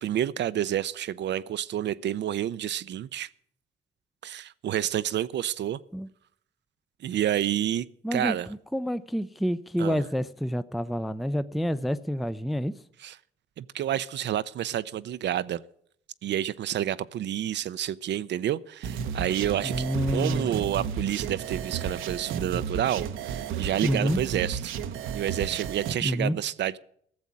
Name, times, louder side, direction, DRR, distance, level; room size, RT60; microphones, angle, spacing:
voice 1, 0.0-3.3 4.2-5.8 7.0-7.9 8.1-8.5 9.8-10.1 13.0-13.2 13.6-15.6 16.2-19.8 20.1-24.8 25.1-26.8, right 11 dB, 60° right, 0.6 m, -29 dB
voice 2, 8.0-8.4 8.7-12.7 19.6-20.5 23.8-24.2 26.0-26.4, equal, ahead, 0.5 m, -28 dB
sound 1, 18.8-25.9, right 7 dB, 85° right, 0.9 m, -33 dB
14.5 x 7.3 x 9.6 m
cardioid pair, 90°, 20 cm